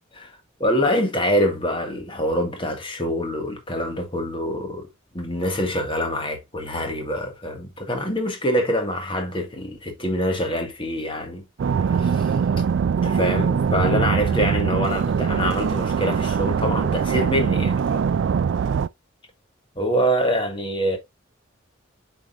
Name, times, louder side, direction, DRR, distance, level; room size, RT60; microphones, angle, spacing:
voice 1, 0.6-4.9 5.1-12.4 13.0-18.1 19.7-21.0, equal, 25° left, 1.7 m, -25 dB
sound 1, 11.6-18.9, right 6 dB, 65° right, 0.3 m, -22 dB
8.2 x 5.3 x 2.5 m
head